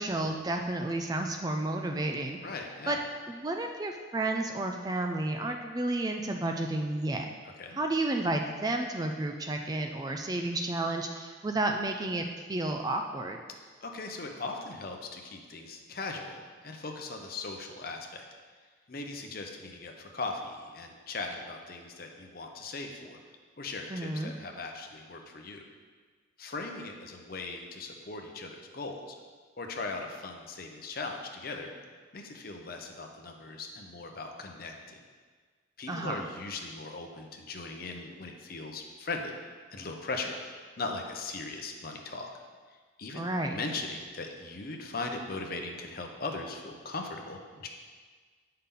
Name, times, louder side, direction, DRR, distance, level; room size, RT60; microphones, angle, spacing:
voice 1, 0.0-2.4 2.9-3.0 3.3-7.3 7.7-12.2 12.5-13.4 23.9-24.3 35.9-36.3 43.1-43.6, right 2 dB, 20° right, 4 dB, 0.3 m, -31 dB
voice 2, 2.4-3.0 7.6-7.8 13.8-18.2 18.9-23.2 23.6-25.6 26.4-29.1 29.6-31.7 32.1-35.0 35.8-39.3 39.7-40.4 40.8-42.3 42.7-47.7, left 3 dB, 45° left, 3 dB, 0.7 m, -39 dB
8.3 x 5.6 x 3.7 m, 1.5 s
head